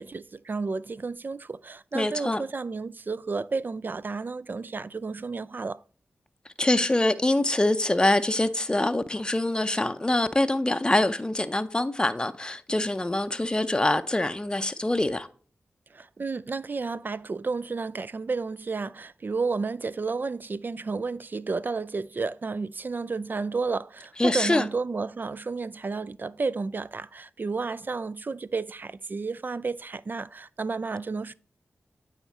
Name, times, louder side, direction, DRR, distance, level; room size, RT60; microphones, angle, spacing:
voice 1, 0.0-5.8 15.9-31.3, right 4 dB, 45° right, 0.3 m, -32 dB
voice 2, 1.9-2.4 6.6-15.3 24.2-24.6, left 1 dB, 20° left, 0.5 m, -24 dB
9.0 x 3.6 x 4.1 m
cardioid pair, 45°, 4 cm